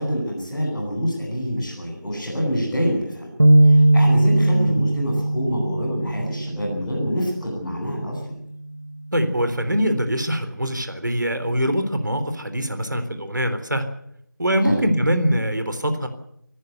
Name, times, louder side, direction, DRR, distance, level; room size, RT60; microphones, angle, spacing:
voice 1, 0.0-3.3 3.6-8.2 14.6-14.8, equal, ahead, -13 dB, 4.6 m, -26 dB
sound 1, 3.4-6.9, right 1 dB, 50° right, 1.0 m, -18 dB
voice 2, 9.1-13.8 14.4-16.1, equal, 70° right, 8 dB, 3.6 m, -23 dB
26.0 x 14.0 x 8.1 m, 0.76 s
figure-of-eight pair, 175°, 11 cm